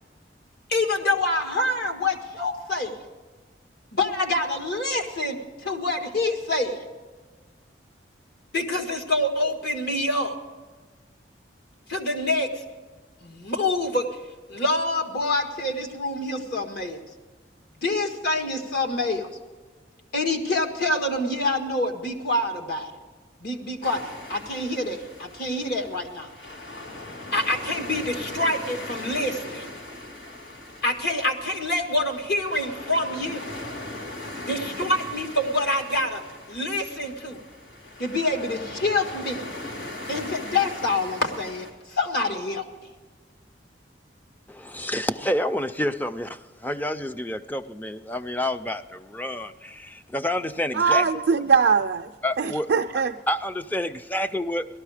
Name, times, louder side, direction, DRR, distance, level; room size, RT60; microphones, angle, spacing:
voice 1, 0.7-3.0 3.9-6.8 8.5-10.4 11.9-12.5 13.2-14.1 14.5-17.0 17.8-19.3 20.1-22.9 23.4-26.3 27.3-29.7 30.8-33.5 34.4-36.2 36.5-37.4 38.0-39.5 40.1-42.6, left 2 dB, 60° left, 1.6 m, -26 dB
sound 1, 23.8-41.7, left 1 dB, 85° left, 2.2 m, -39 dB
voice 2, 44.5-51.0 52.2-52.7 52.9-54.7, left 1 dB, 10° left, 0.4 m, -29 dB
voice 3, 50.7-52.1 52.4-53.2, right 5 dB, 75° right, 0.5 m, -21 dB
17.5 x 13.0 x 4.9 m
head